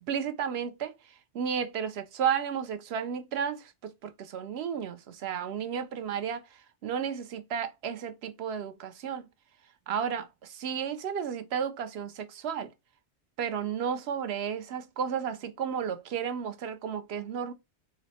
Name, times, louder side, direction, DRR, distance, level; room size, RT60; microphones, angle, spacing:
voice 1, 0.0-9.3 9.9-12.7 13.4-17.5, right 7 dB, 70° right, 0.8 m, -33 dB
4.1 x 2.1 x 4.1 m
omnidirectional pair, 1.2 m